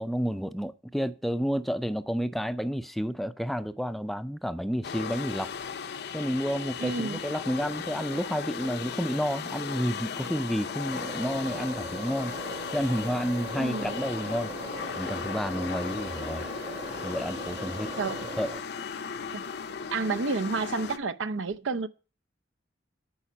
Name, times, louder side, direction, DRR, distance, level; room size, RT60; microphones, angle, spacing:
voice 1, 0.0-5.5 6.1-12.3 12.7-14.5 15.0-16.5 17.0-17.9 18.4-18.5, equal, ahead, 0.4 m, -30 dB
sound 1, 4.8-21.0, left 6 dB, 60° left, 0.6 m, -36 dB
voice 2, 6.8-7.2 13.6-13.9 18.0-18.3 19.3-19.4 19.9-21.9, right 4 dB, 80° right, 0.6 m, -30 dB
sound 2, 10.9-18.6, right 2 dB, 30° right, 1.0 m, -40 dB
8.8 x 5.0 x 7.1 m
head